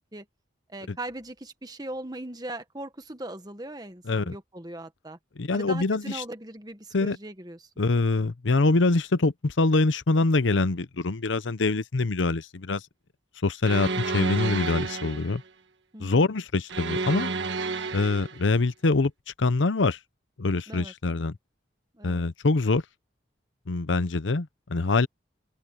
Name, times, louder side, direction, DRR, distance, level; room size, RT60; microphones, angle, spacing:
voice 1, 0.7-5.2 5.5-7.8 15.9-16.3 20.7-20.9 21.9-22.2, right 1 dB, 20° right, 1.5 m, -39 dB
voice 2, 4.1-4.4 5.4-6.2 6.9-7.2 7.8-12.8 13.4-15.4 16.0-17.3 17.9-19.1 19.4-20.0 20.4-21.3 22.0-22.8 23.7-25.1, left 3 dB, 85° left, 0.8 m, -24 dB
sound 1, 13.6-15.4 16.7-18.4, right 4 dB, 75° right, 1.3 m, -30 dB
open air
head